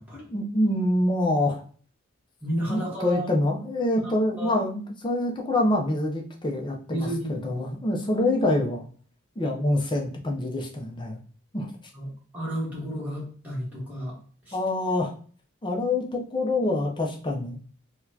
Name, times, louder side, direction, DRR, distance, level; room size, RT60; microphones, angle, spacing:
voice 1, 0.1-1.6 2.7-8.9 9.4-11.2 11.5-11.7 14.5-15.1 15.6-17.6, left 1 dB, 25° left, 1 dB, 0.6 m, -26 dB
voice 2, 2.4-3.3 4.0-4.5 6.9-7.3 11.9-14.6, equal, 10° right, -7 dB, 1.4 m, -32 dB
3.9 x 2.3 x 2.7 m, 0.44 s
head